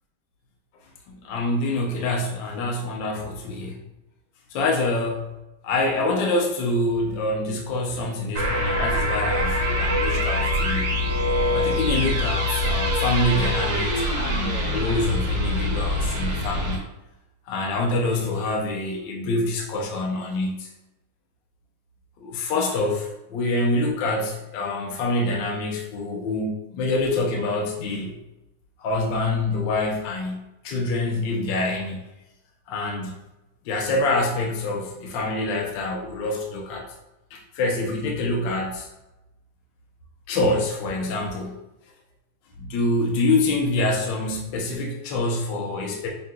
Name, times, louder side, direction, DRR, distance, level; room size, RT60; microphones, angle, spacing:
voice 1, 1.1-3.8 4.5-5.3 5.6-10.9 11.5-16.8 17.5-20.7 22.2-28.1 28.8-32.0 32.7-33.1 33.6-36.8 37.3-38.9 40.3-41.6 42.6-46.1, left 2 dB, 65° left, -1 dB, 1.3 m, -26 dB
sound 1, 8.4-16.8, left 1 dB, 65° right, 1.5 m, -24 dB
5.5 x 2.9 x 2.3 m, 0.94 s
omnidirectional pair, 2.3 m